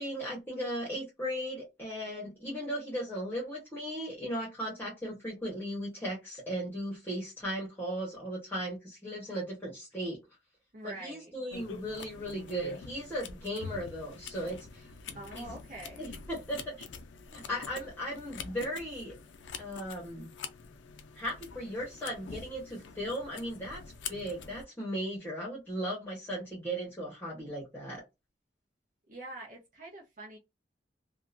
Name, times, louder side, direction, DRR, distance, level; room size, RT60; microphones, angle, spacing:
voice 1, 0.0-10.2 10.8-14.8 15.3-15.5 16.0-16.7 17.3-19.1 19.6-20.3 21.1-23.8 24.1-28.0, equal, 10° left, -6 dB, 1.1 m, -37 dB
voice 2, 10.7-11.3 15.1-16.1 29.1-30.4, right 2 dB, 45° right, -2 dB, 0.7 m, -45 dB
sound 1, 11.5-24.6, left 5 dB, 85° left, 0.5 m, -45 dB
2.8 x 2.3 x 2.5 m, 0.23 s
head